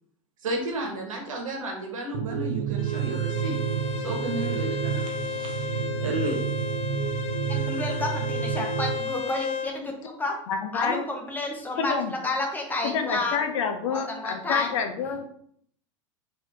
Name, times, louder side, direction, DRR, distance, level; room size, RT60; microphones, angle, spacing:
voice 1, 0.4-3.5 4.0-5.7 6.0-6.4, right 1 dB, 85° right, 1 dB, 1.2 m, -32 dB
sound 1, 2.1-9.0, right 9 dB, 60° right, 0.4 m, -30 dB
Bowed string instrument, 2.8-9.7, left 7 dB, 40° left, 0.5 m, -34 dB
voice 2, 7.5-10.4 10.7-13.4 13.9-14.7, left 2 dB, 10° left, 2 dB, 0.8 m, -30 dB
voice 3, 10.5-11.0 11.8-12.1 12.8-15.2, left 6 dB, 70° left, 6 dB, 0.7 m, -28 dB
4.2 x 2.9 x 3.4 m, 0.65 s
hypercardioid pair, 105°, 17 cm